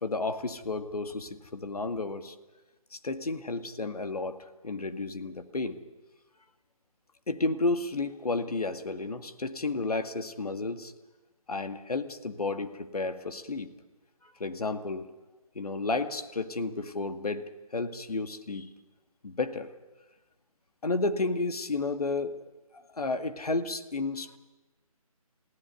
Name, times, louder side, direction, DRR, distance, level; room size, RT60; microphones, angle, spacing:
voice 1, 0.0-2.4 2.9-4.4 4.6-5.8 7.3-10.9 11.5-13.7 14.2-15.1 15.6-17.4 17.7-18.7 19.2-19.7 20.8-22.4 22.7-24.4, left 3 dB, 80° left, 9 dB, 2.0 m, -32 dB
22.0 x 16.0 x 9.5 m, 1.2 s
figure-of-eight pair, 165°, 19 cm